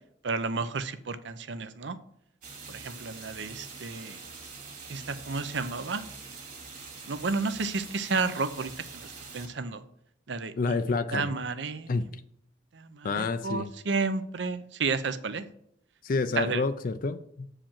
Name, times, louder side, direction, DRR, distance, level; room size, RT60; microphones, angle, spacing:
voice 1, 0.2-2.0 2.7-4.2 4.9-6.0 7.1-9.8 10.3-10.8 11.1-11.9 12.7-15.5 16.4-16.6, right 4 dB, 70° right, 12 dB, 0.6 m, -32 dB
sound 1, 2.4-9.5, right 4 dB, 45° right, 1.8 m, -44 dB
voice 2, 10.6-11.3 11.9-12.1 13.0-13.7 16.0-17.5, left 4 dB, 45° left, 11 dB, 0.4 m, -28 dB
7.5 x 5.0 x 7.3 m, 0.73 s
head